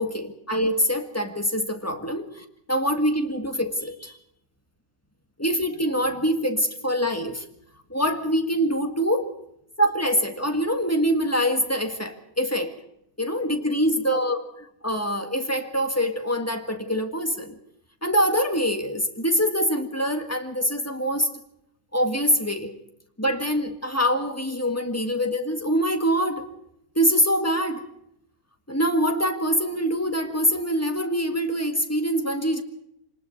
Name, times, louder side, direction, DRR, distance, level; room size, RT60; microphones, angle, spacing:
voice 1, 0.0-4.1 5.4-7.4 7.9-9.3 9.8-12.7 13.2-17.6 18.0-21.3 21.9-22.8 23.2-26.5 27.0-27.8 28.7-32.6, equal, 10° left, 5 dB, 1.7 m, -24 dB
25.5 x 19.5 x 5.4 m, 0.78 s
omnidirectional pair, 1.6 m